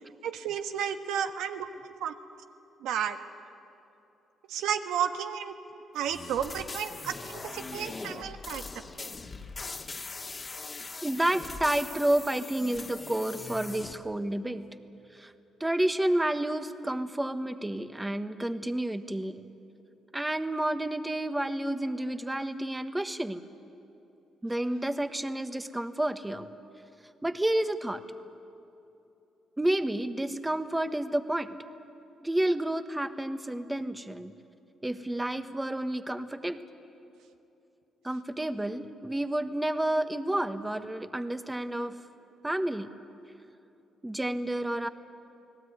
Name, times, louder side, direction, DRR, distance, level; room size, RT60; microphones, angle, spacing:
voice 1, 0.2-2.1 2.8-3.2 4.5-5.5 5.9-9.1, right 8 dB, 90° right, 7 dB, 1.3 m, -32 dB
sound 1, 6.0-13.9, left 3 dB, 30° left, 1.8 m, -41 dB
voice 2, 11.0-14.6 15.1-15.3 15.6-19.5 20.1-23.4 24.4-26.5 27.2-28.0 29.6-31.6 32.2-34.3 34.8-36.6 38.0-41.9 42.4-42.9 44.0-44.9, right 1 dB, 10° right, 9 dB, 1.3 m, -30 dB
29.5 x 19.0 x 9.5 m, 2.8 s
cardioid pair, 90°, 0 cm